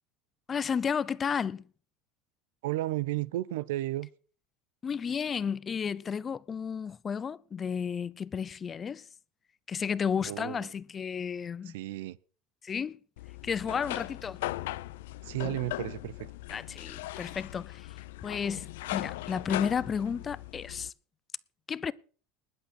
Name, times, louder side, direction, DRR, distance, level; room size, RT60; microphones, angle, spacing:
voice 1, 0.5-1.6 4.8-9.1 9.7-11.7 12.6-13.0 13.4-14.4 16.5-17.9 18.2-20.9 21.7-21.9, left 7 dB, 25° left, 0.6 m, -32 dB
voice 2, 2.6-4.1 10.3-10.7 11.7-12.2 15.2-16.3, right 16 dB, 85° right, 0.7 m, -33 dB
sound 1, 13.2-20.9, left 17 dB, 90° left, 0.6 m, -39 dB
20.0 x 8.2 x 6.4 m
supercardioid pair, 135°, 0 cm